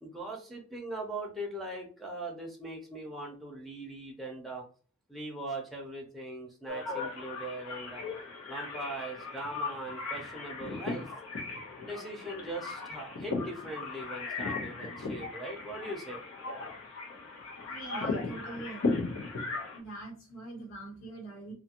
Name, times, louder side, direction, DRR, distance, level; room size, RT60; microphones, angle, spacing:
voice 1, 0.0-4.6 5.1-8.0 8.5-11.1 11.8-16.2, right 1 dB, ahead, -2 dB, 0.5 m, -40 dB
sound 1, 6.7-19.8, left 3 dB, 85° left, 0.8 m, -37 dB
voice 2, 17.7-19.1 19.7-21.5, right 2 dB, 65° left, 0 dB, 1.2 m, -43 dB
2.6 x 2.4 x 2.8 m, 0.40 s
head